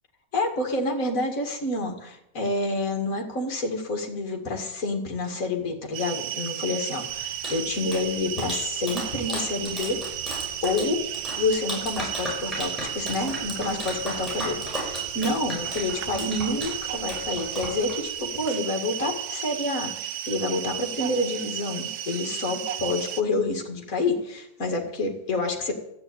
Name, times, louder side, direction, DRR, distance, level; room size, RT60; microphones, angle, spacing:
voice 1, 0.3-10.0 10.6-11.0 11.4-25.7, left 2 dB, 45° left, 3 dB, 2.5 m, -28 dB
sound 1, 5.9-23.2, right 11 dB, 65° right, 1.2 m, -33 dB
Clapping, 7.1-18.2, equal, ahead, 6.2 m, -36 dB
12.5 x 9.6 x 8.7 m, 0.82 s
omnidirectional pair, 2.0 m